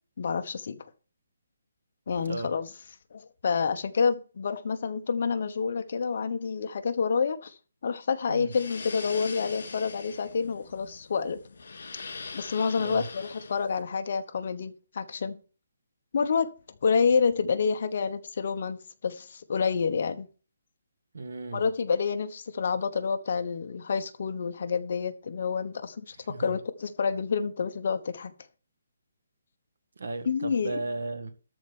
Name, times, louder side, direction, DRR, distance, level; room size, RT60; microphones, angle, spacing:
voice 1, 0.2-0.8 2.1-2.7 3.1-7.5 7.8-11.4 12.3-15.4 16.1-16.5 16.8-20.3 21.5-28.3 30.3-30.8, left 5 dB, 40° left, 1.1 m, -28 dB
sound 1, 8.5-13.8, left 4 dB, 60° left, 3.5 m, -42 dB
voice 2, 12.7-13.1 21.1-21.7 26.3-26.5 30.0-31.3, right 2 dB, 70° right, 1.9 m, -35 dB
13.0 x 4.4 x 8.3 m
hypercardioid pair, 175°, 0 cm